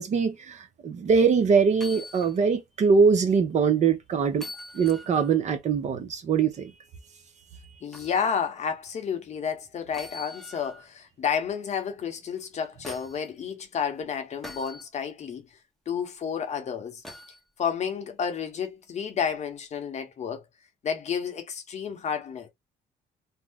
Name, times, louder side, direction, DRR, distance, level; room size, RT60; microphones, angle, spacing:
voice 1, 0.0-4.5 4.7-6.7, right 5 dB, 45° right, 0.7 m, -22 dB
sound 1, 1.7-2.4 2.8-2.9 4.3-5.4 7.9-8.2 9.9-10.9 12.4-13.3 14.4-14.9 17.0-17.4 19.2-19.3, left 1 dB, ahead, 0.7 m, -43 dB
voice 2, 7.8-15.4 15.9-17.0 17.6-20.4 20.8-22.5, left 7 dB, 40° left, 0.8 m, -31 dB
2.7 x 2.0 x 3.4 m
cardioid pair, 110°, 17 cm